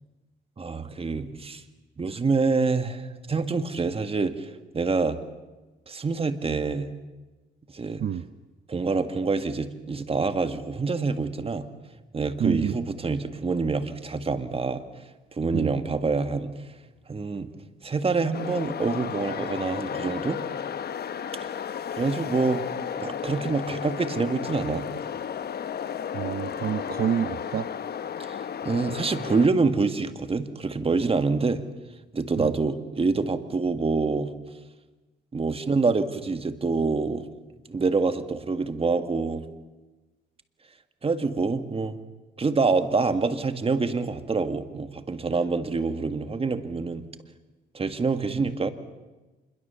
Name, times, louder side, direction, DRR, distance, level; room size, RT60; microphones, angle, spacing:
voice 1, 0.6-1.6 2.0-5.2 5.9-6.9 7.7-8.0 8.7-11.7 12.1-14.8 15.3-16.5 17.1-17.5 17.8-20.4 22.0-22.6 23.0-24.9 28.3-28.4 28.6-31.6 32.1-34.3 35.3-37.3 37.7-39.5 41.0-42.0 42.4-47.0 47.7-48.7, right 4 dB, 30° right, 9 dB, 1.8 m, -26 dB
voice 2, 12.4-12.9 15.5-15.8 26.1-27.7 32.4-32.6 48.3-48.4, right 9 dB, 50° right, 12 dB, 0.7 m, -28 dB
sound 1, 18.3-29.5, left 8 dB, 55° left, 1.1 m, -33 dB
26.5 x 22.0 x 7.0 m, 1.2 s
cardioid pair, 90°, 20 cm